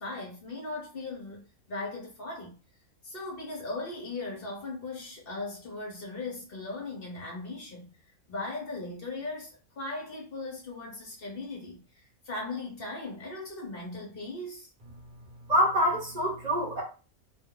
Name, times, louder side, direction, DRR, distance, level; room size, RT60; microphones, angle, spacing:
voice 1, 0.0-1.4 1.7-2.5 3.0-7.8 8.3-9.5 9.8-11.8 12.3-14.7, left 2 dB, 45° left, 1.1 m, -38 dB
voice 2, 15.5-16.8, equal, 30° right, 1.0 m, -25 dB
2.8 x 2.1 x 3.8 m
omnidirectional pair, 1.6 m